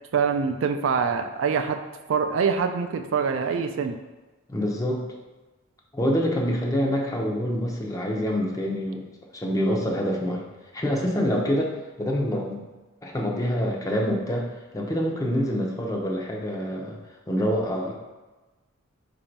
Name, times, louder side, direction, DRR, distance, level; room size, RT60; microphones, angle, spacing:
voice 1, 0.1-1.8 2.1-3.9, right 6 dB, 65° right, 6 dB, 0.3 m, -24 dB
voice 2, 4.5-5.1 5.9-9.1 9.3-10.4 10.7-12.6 13.0-17.0 17.3-18.0, equal, 15° left, -1 dB, 0.6 m, -26 dB
4.2 x 2.6 x 4.5 m, 1.2 s
head